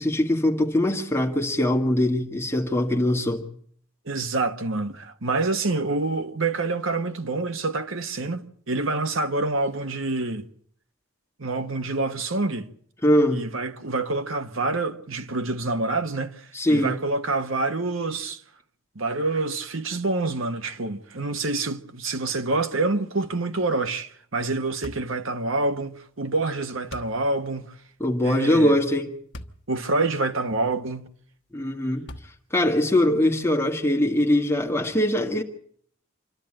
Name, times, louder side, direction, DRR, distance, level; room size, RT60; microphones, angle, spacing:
voice 1, 0.0-3.4 13.0-13.5 16.5-17.0 28.0-29.1 31.5-32.0 32.5-35.4, left 1 dB, 10° left, 2.0 m, -22 dB
voice 2, 4.1-10.5 11.4-12.7 13.3-18.4 18.9-27.7 28.2-28.7 29.7-31.0, right 3 dB, 70° right, 1.3 m, -27 dB
sound 1, 24.8-25.2 26.9-27.2 29.3-29.6 30.2-30.3 32.1-32.6, left 1 dB, 55° left, 1.2 m, -40 dB
27.0 x 12.0 x 8.9 m
head